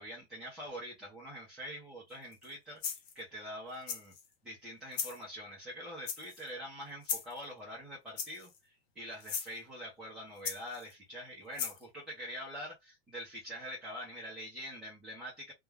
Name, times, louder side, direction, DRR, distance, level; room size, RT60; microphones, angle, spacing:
voice 1, 0.0-2.8 3.1-4.1 4.4-15.5, equal, ahead, 0.4 m, -45 dB
sound 1, 2.3-2.5 2.8-3.2 3.9-4.3 4.9-5.2 6.1-6.5 7.0-7.4 8.2-8.6 9.2-9.5 10.4-10.9 11.6-11.8, left 7 dB, 65° left, 0.8 m, -37 dB
2.3 x 2.2 x 3.2 m
supercardioid pair, 165°, 34 cm